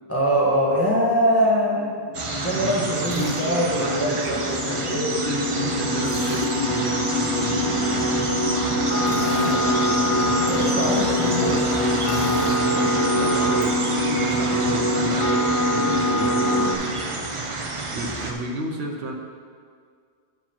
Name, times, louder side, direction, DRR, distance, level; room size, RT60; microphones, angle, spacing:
voice 1, 0.1-1.9 2.3-5.1 10.4-11.6, equal, 10° left, -6 dB, 1.9 m, -23 dB
sound 1, 1.8-16.7, left 1 dB, 75° left, 1.2 m, -24 dB
sound 2, 2.1-18.3, right 3 dB, 30° right, 0.7 m, -28 dB
voice 2, 2.6-4.4 4.9-10.8 12.7-17.0 17.6-19.1, right 2 dB, 65° right, 2 dB, 1.2 m, -33 dB
Drill, 3.0-3.4 6.0-6.5 9.0-9.6 12.0-12.6, left 2 dB, 50° left, 1.1 m, -35 dB
9.2 x 4.9 x 5.8 m, 2.1 s
omnidirectional pair, 1.2 m